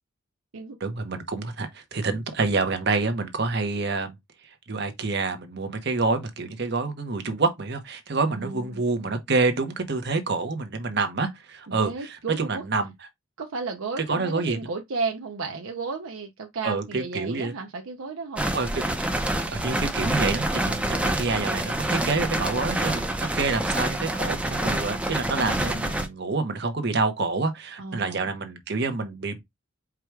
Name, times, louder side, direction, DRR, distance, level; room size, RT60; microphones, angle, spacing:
voice 1, 0.8-4.1 4.7-12.9 14.0-14.6 16.6-17.5 18.5-18.7 19.5-23.1 23.4-29.4, right 3 dB, 55° right, 0.9 m, -27 dB
voice 2, 8.3-8.8 11.7-12.6 13.4-18.5 20.7-21.1 25.4-25.9 27.8-28.3, right 4 dB, 85° right, 0.6 m, -34 dB
sound 1, 18.4-26.1, right 1 dB, 5° right, 0.6 m, -27 dB
4.8 x 2.3 x 4.6 m
head